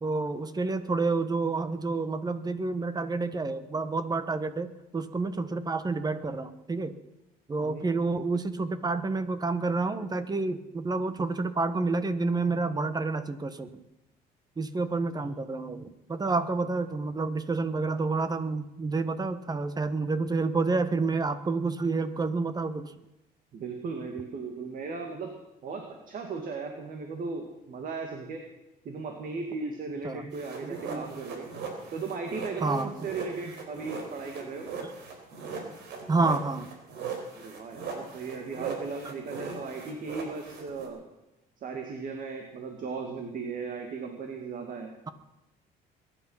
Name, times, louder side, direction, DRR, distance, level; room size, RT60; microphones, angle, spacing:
voice 1, 0.0-7.0 7.5-13.7 14.6-22.9 30.0-30.2 30.6-31.0 32.6-32.9 36.1-36.7, right 3 dB, 25° right, 12 dB, 1.3 m, -29 dB
voice 2, 23.5-25.3 25.6-28.4 28.8-31.5 31.9-34.7 37.4-41.0 41.6-44.9, right 4 dB, 55° right, 3 dB, 2.3 m, -37 dB
sound 1, 30.3-40.9, right 5 dB, 85° right, 4.0 m, -39 dB
22.0 x 11.0 x 5.8 m, 0.95 s
cardioid pair, 110°, 17 cm